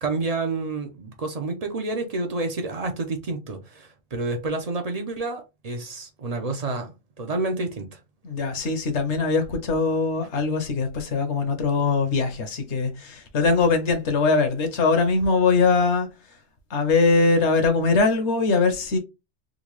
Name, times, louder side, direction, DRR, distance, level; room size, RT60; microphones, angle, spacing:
voice 1, 0.0-8.0, right 3 dB, 45° right, 0.5 m, -29 dB
voice 2, 8.2-16.1 16.7-19.0, left 4 dB, 60° left, 1.0 m, -22 dB
3.8 x 2.2 x 3.1 m
omnidirectional pair, 1.4 m